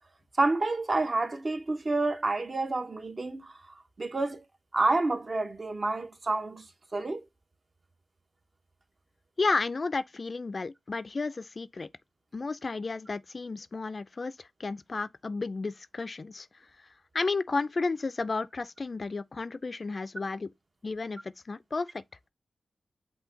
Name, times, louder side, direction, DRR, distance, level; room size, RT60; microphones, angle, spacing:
voice 1, 0.4-4.4 4.7-7.2, right 2 dB, 45° right, 0.8 m, -29 dB
voice 2, 9.4-11.9 12.3-16.5 17.1-20.5 20.8-22.0, left 3 dB, 50° left, 0.3 m, -32 dB
5.6 x 2.2 x 3.7 m
cardioid pair, 55°, 0 cm